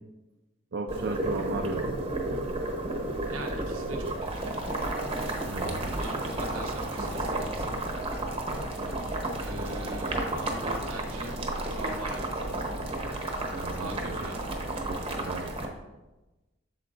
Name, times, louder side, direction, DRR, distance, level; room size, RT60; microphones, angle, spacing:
voice 1, 0.7-2.0 5.5-5.9 7.0-7.1 13.5-14.3 14.9-15.5, right 3 dB, 55° right, 3 dB, 0.4 m, -35 dB
Boiling, 0.9-15.7, right 2 dB, 30° right, 0.9 m, -32 dB
sound 1, 3.1-3.9 4.3-5.3 5.7-6.6 7.1-8.0 8.4-9.3 9.8-10.7 11.1-12.1 12.5-13.4 13.9-14.0, equal, 75° left, 1.1 m, -50 dB
voice 2, 3.2-4.5 5.6-7.7 9.4-11.4 11.6-12.5 13.7-14.6, right 1 dB, 90° right, 3 dB, 0.9 m, -42 dB
sound 2, 5.4-12.0, equal, 20° left, 1.1 m, -49 dB
8.1 x 6.7 x 2.5 m, 1.0 s
head